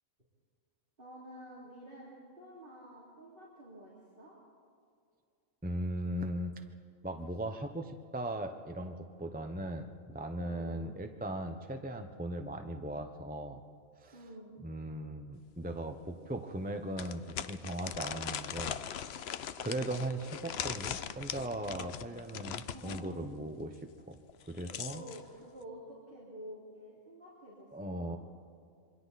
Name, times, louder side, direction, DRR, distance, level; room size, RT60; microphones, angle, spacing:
voice 1, 1.0-4.3 10.4-10.9 14.1-14.6 22.3-22.4 22.7-23.2 24.6-28.1, right 1 dB, 40° right, -6 dB, 3.4 m, -50 dB
voice 2, 5.6-6.6 7.0-13.6 14.0-14.2 14.6-18.8 19.6-23.8 24.1-24.2 24.5-25.0 27.7-28.2, right 1 dB, 10° right, 5 dB, 0.8 m, -38 dB
sound 1, 15.5-15.6 16.0-16.1 17.0-23.1 24.3-25.2, left 9 dB, 60° left, 0.8 m, -40 dB
27.5 x 23.5 x 4.2 m, 2.3 s
omnidirectional pair, 1.4 m